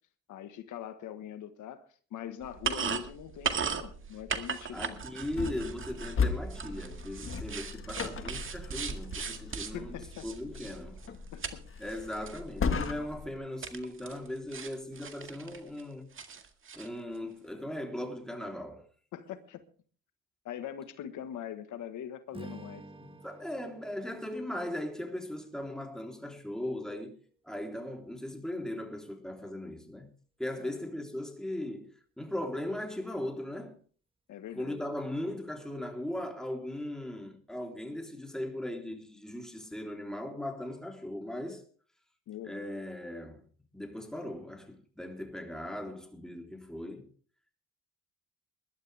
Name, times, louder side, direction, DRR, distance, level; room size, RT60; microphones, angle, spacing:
voice 1, 0.3-5.0 9.7-10.3 11.3-11.6 19.1-19.6 20.4-22.8 30.6-30.8 34.3-34.8 42.3-42.7, left 10 dB, 80° left, 1.5 m, -42 dB
sound 1, 2.4-11.6 11.8-12.4 12.8-12.9 13.6-14.3 14.5-15.8 16.2-16.9, right 6 dB, 45° right, 1.9 m, -38 dB
voice 2, 4.7-10.0 10.2-11.0 11.8-16.1 16.7-18.9 23.0-27.2 27.5-30.1 30.4-33.8 34.6-41.6 42.4-43.4 43.7-47.1, left 1 dB, ahead, 3.5 m, -38 dB
Car Trunk, 5.3-13.4, left 5 dB, 45° left, 1.7 m, -36 dB
Strum, 22.3-26.7, right 2 dB, 15° right, 1.6 m, -51 dB
21.0 x 12.0 x 3.4 m
cardioid pair, 90°, 30 cm